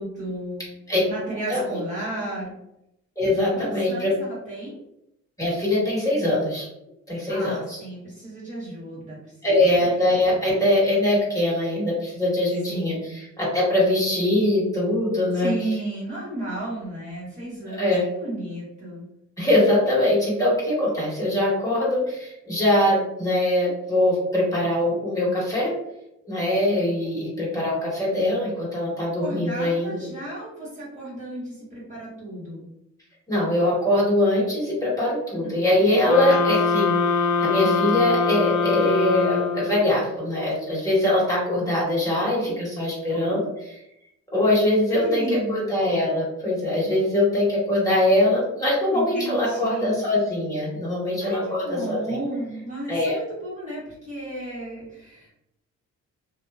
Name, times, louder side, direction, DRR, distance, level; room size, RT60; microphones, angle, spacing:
voice 1, 0.0-0.8 1.1-2.5 3.5-4.8 7.1-9.2 9.7-9.9 12.7-13.1 15.3-19.0 29.2-32.6 35.4-35.5 36.2-36.4 42.2-42.5 43.1-43.4 44.9-45.7 48.9-50.0 51.2-55.3, right 1 dB, 25° right, -7 dB, 1.1 m, -33 dB
voice 2, 3.2-4.1 5.4-6.7 7.1-7.8 9.4-15.5 17.7-18.0 19.4-25.7 26.2-29.9 33.3-43.7 44.3-52.0 52.9-53.2, left 1 dB, 10° left, -7 dB, 1.4 m, -22 dB
sound 1, 36.1-39.9, left 4 dB, 65° left, 0.5 m, -23 dB
2.6 x 2.2 x 2.3 m, 0.84 s
cardioid pair, 90°, 30 cm